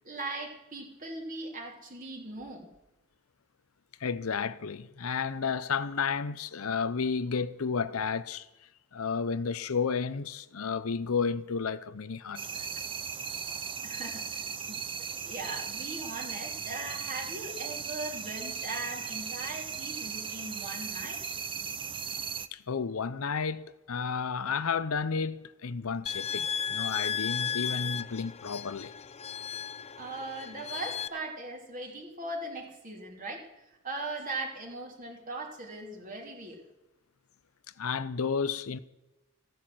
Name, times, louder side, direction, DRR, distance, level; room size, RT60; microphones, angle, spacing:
voice 1, 0.0-2.7 13.8-21.4 30.0-33.5 33.8-36.6, right 2 dB, 40° right, 3.1 m, -39 dB
voice 2, 4.0-8.5 8.9-12.7 22.5-28.9 37.8-38.8, left 5 dB, 80° left, 0.7 m, -32 dB
sound 1, 12.4-22.5, right 6 dB, 25° right, 0.6 m, -37 dB
sound 2, 26.1-31.1, left 7 dB, 30° left, 0.7 m, -35 dB
15.0 x 10.0 x 7.8 m
head